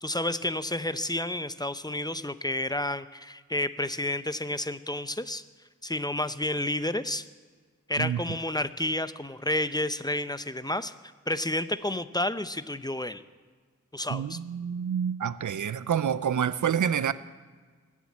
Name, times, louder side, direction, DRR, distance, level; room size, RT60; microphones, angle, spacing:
voice 1, 0.0-5.4 5.8-7.2 7.9-10.9 11.3-13.2 13.9-14.4, left 1 dB, 15° left, 0.6 m, -30 dB
voice 2, 14.1-17.1, right 8 dB, 90° right, 0.5 m, -28 dB
20.0 x 7.4 x 8.6 m
wide cardioid pair, 70°, 29 cm